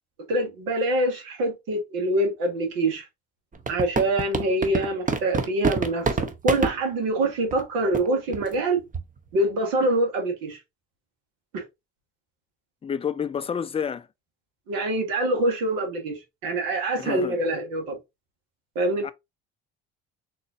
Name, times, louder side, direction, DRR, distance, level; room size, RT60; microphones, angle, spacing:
voice 1, 0.3-3.1 3.7-6.2 6.4-8.8 9.3-10.6 11.5-11.6 14.7-18.0 18.7-19.1, right 1 dB, 75° right, 1.5 m, -25 dB
sound 1, 3.5-6.7 7.5-7.6 7.9-8.1 8.3-8.5 8.9-9.2, right 4 dB, 25° right, 0.7 m, -25 dB
voice 2, 12.8-14.1 17.0-17.4 19.0-19.1, left 7 dB, 20° left, 0.4 m, -29 dB
3.8 x 3.0 x 2.5 m
hypercardioid pair, 70°, 34 cm